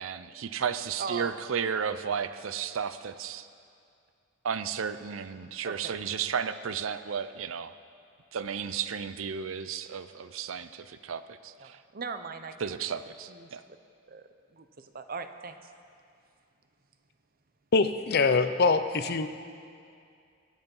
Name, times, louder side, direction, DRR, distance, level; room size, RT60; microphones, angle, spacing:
voice 1, 0.0-3.5 4.4-7.7 8.3-11.8 12.6-13.6, right 7 dB, 80° right, 12 dB, 0.5 m, -33 dB
voice 2, 1.0-1.3 5.6-5.9 11.6-12.7 13.3-13.5 14.1-15.6, right 5 dB, 45° right, 9 dB, 0.8 m, -39 dB
voice 3, 17.7-19.3, left 4 dB, 50° left, 10 dB, 0.6 m, -24 dB
23.0 x 8.0 x 5.5 m, 2.4 s
head